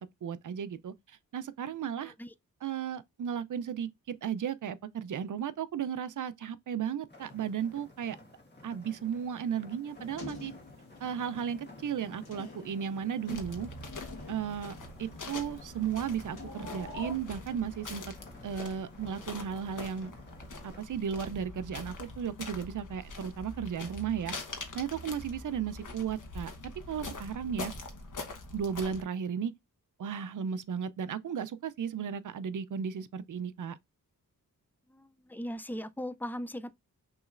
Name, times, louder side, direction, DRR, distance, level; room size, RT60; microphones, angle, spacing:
voice 1, 0.2-0.9 1.3-2.1 2.6-8.2 8.6-10.5 11.0-13.7 14.3-18.1 18.4-20.1 20.6-24.4 24.7-27.7 28.5-29.5 30.0-33.8, right 8 dB, 60° right, 0.5 m, -35 dB
voice 2, 2.0-2.3 13.3-13.4 34.9-36.7, equal, 5° left, 0.3 m, -39 dB
sound 1, 7.1-20.8, left 2 dB, 30° left, 1.5 m, -53 dB
sound 2, 9.9-17.1, left 3 dB, 90° left, 1.4 m, -48 dB
sound 3, 13.3-29.0, left 2 dB, 55° left, 1.2 m, -44 dB
6.0 x 3.1 x 2.5 m
wide cardioid pair, 75°, 36 cm